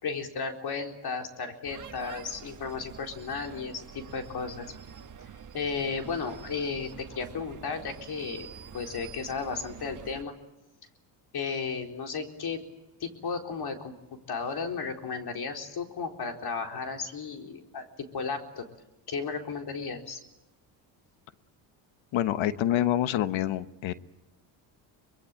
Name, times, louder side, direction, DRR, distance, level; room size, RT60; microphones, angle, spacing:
voice 1, 0.0-4.7 5.5-10.3 11.3-12.6 13.0-13.9 14.3-17.9 18.1-18.6 19.1-20.2, left 5 dB, 50° left, 4 dB, 4.1 m, -34 dB
sound 1, 1.6-10.2, right 7 dB, 40° right, 1.6 m, -46 dB
voice 2, 22.1-23.9, left 12 dB, 65° left, 13 dB, 1.2 m, -26 dB
24.5 x 22.0 x 8.9 m, 0.97 s
supercardioid pair, 85°, 49 cm